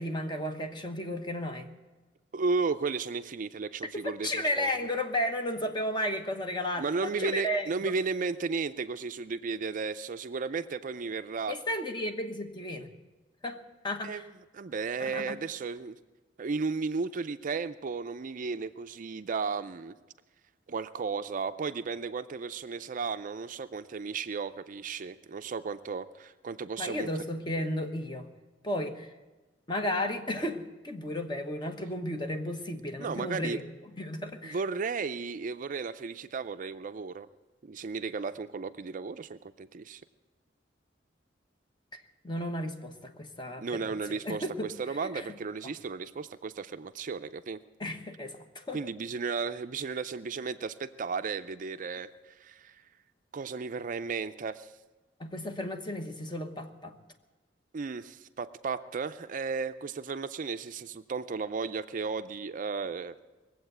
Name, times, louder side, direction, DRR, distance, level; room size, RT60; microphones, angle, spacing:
voice 1, 0.0-1.7 3.9-7.9 11.5-12.9 13.4-14.3 15.0-15.4 26.8-28.3 28.6-29.1 29.7-33.6 33.9-34.6 41.9-45.3 45.6-45.7 47.8-48.9 55.2-56.9, left 1 dB, 25° left, 6 dB, 1.1 m, -34 dB
voice 2, 2.3-4.7 6.8-11.5 14.0-16.0 16.4-20.0 20.7-27.1 33.0-33.6 34.4-37.3 37.6-40.0 43.6-47.6 48.7-52.8 53.3-54.7 57.7-63.2, right 4 dB, 45° right, 11 dB, 0.4 m, -34 dB
20.0 x 7.9 x 8.0 m, 1.2 s
head